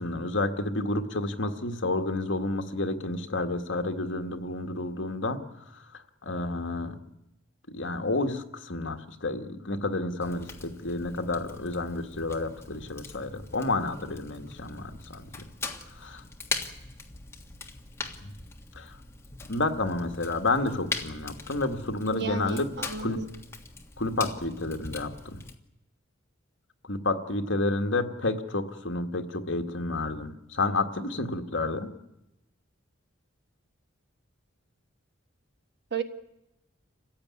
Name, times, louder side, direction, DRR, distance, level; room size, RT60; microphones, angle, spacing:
voice 1, 0.0-5.4 5.7-5.8 6.2-7.0 7.7-15.3 16.0-16.2 18.2-18.3 18.7-19.0 19.5-22.7 23.0-23.2 24.0-25.4 26.9-31.9, left 2 dB, 65° left, 6 dB, 1.7 m, -30 dB
Fire, 10.2-25.5, left 3 dB, 10° left, 1.5 m, -41 dB
voice 2, 22.1-23.3 35.9-36.0, right 4 dB, 50° right, 7 dB, 1.6 m, -33 dB
27.5 x 15.5 x 9.7 m, 0.94 s
head